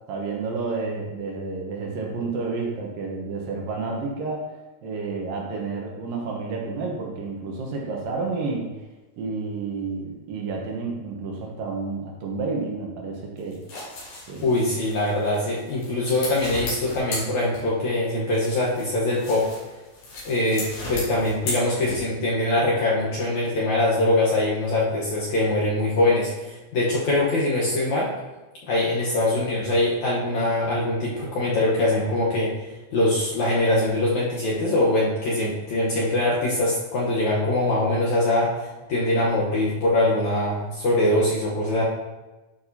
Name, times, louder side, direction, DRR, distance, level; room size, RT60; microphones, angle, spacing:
voice 1, 0.1-4.5 4.8-8.7 9.2-13.6 14.3-14.5, right 4 dB, 70° right, -1 dB, 2.6 m, -30 dB
sound 1, 13.4-17.9 18.3-22.3, left 2 dB, 85° left, 5.2 m, -36 dB
voice 2, 14.4-19.6 20.2-28.1 28.7-32.5 32.9-41.8, left 1 dB, 65° left, -5 dB, 2.0 m, -23 dB
11.5 x 6.2 x 2.8 m, 1.1 s
omnidirectional pair, 4.5 m